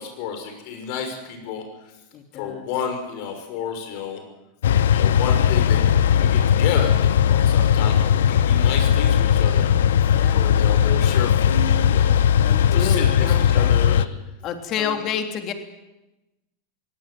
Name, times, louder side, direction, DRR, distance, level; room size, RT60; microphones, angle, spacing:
voice 1, 0.0-1.9 2.3-4.2 4.9-9.7 10.3-12.1 12.7-14.1 14.8-15.0, left 6 dB, 60° left, 5 dB, 6.2 m, -31 dB
voice 2, 2.1-2.7 7.7-7.9 10.1-10.5 12.4-13.8 14.4-15.5, left 7 dB, 45° left, 6 dB, 3.2 m, -30 dB
sound 1, 4.6-14.0, left 9 dB, 75° left, 0.7 m, -18 dB
22.5 x 18.5 x 7.9 m, 1.0 s
hypercardioid pair, 95°, 0 cm